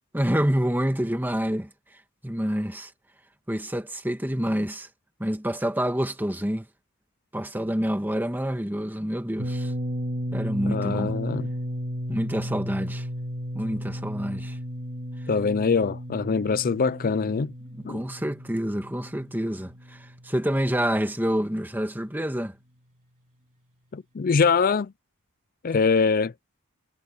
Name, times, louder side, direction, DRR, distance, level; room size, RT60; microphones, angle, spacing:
voice 1, 0.1-1.7 2.2-2.9 3.5-4.9 5.2-6.7 7.3-9.7 10.3-11.2 12.1-13.1 13.5-14.6 17.7-22.5, equal, 10° right, 1.9 m, -27 dB
sound 1, 9.4-21.1, equal, 35° right, 3.2 m, -34 dB
voice 2, 10.7-11.5 15.3-17.5 17.8-18.0 23.9-24.9 25.6-26.3, left 5 dB, 40° left, 0.4 m, -23 dB
head